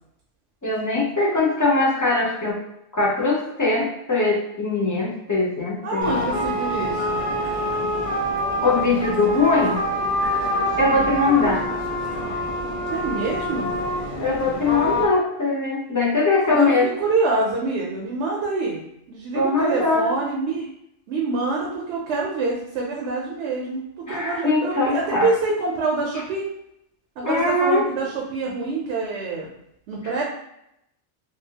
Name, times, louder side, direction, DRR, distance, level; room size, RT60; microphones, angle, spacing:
voice 1, 0.6-2.6 2.9-6.2 8.6-9.8 10.8-11.6 14.2-16.9 19.3-20.1 24.1-25.3 27.2-27.9, left 3 dB, 25° left, -4 dB, 0.4 m, -21 dB
voice 2, 5.8-7.2 10.8-11.2 12.9-13.7 16.4-18.8 19.1-20.7 21.1-26.5 27.2-29.5 29.9-30.2, right 3 dB, 75° right, -3 dB, 0.8 m, -26 dB
sound 1, 6.0-15.1, equal, 50° left, 0.9 m, -26 dB
2.7 x 2.3 x 2.7 m, 0.80 s
omnidirectional pair, 1.2 m